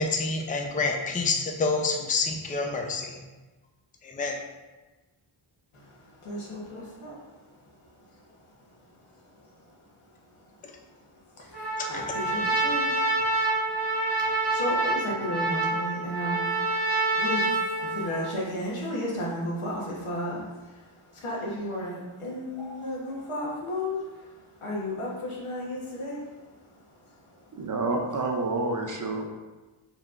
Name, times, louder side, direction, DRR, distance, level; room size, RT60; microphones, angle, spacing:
voice 1, 0.0-3.1 4.0-4.4 11.9-12.0, left 3 dB, 15° left, 2 dB, 0.4 m, -27 dB
voice 2, 5.7-7.2 8.1-8.2 9.4-9.5 10.4-10.5 11.1-26.5 27.0-27.1, left 1 dB, 80° left, -4 dB, 1.1 m, -34 dB
Trumpet, 11.5-18.3, right 2 dB, 55° left, 1.2 m, -27 dB
voice 3, 27.5-29.3, right 2 dB, 40° right, 2 dB, 0.5 m, -28 dB
4.6 x 3.2 x 2.4 m, 1.2 s
wide cardioid pair, 70°, 49 cm